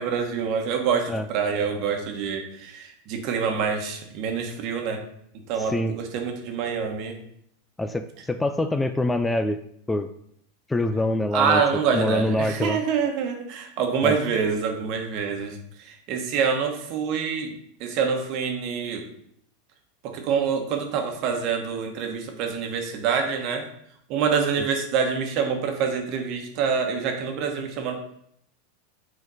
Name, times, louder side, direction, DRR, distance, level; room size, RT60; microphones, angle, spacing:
voice 1, 0.0-5.0 5.5-7.2 11.3-17.5 17.8-19.1 20.0-23.7 24.1-28.0, right 6 dB, 55° right, 4 dB, 1.2 m, -26 dB
voice 2, 7.8-9.6 9.9-10.1 10.7-11.6 11.9-12.8 14.0-14.2, left 1 dB, 10° left, 9 dB, 0.4 m, -25 dB
6.6 x 4.4 x 3.9 m, 0.69 s
hypercardioid pair, 100°, 0 cm